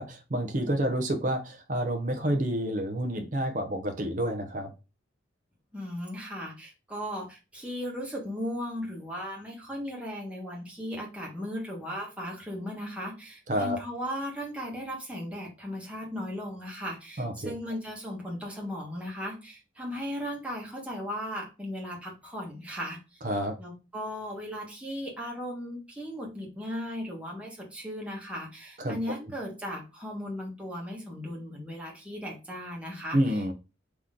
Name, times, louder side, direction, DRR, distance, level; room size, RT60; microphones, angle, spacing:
voice 1, 0.0-4.7 13.5-13.8 17.2-17.5 23.2-23.5 28.8-29.2 33.1-33.5, right 1 dB, 40° right, 4 dB, 0.7 m, -29 dB
voice 2, 5.7-23.2 23.6-33.4, equal, 5° right, -3 dB, 1.3 m, -37 dB
3.8 x 3.0 x 3.6 m, 0.30 s
head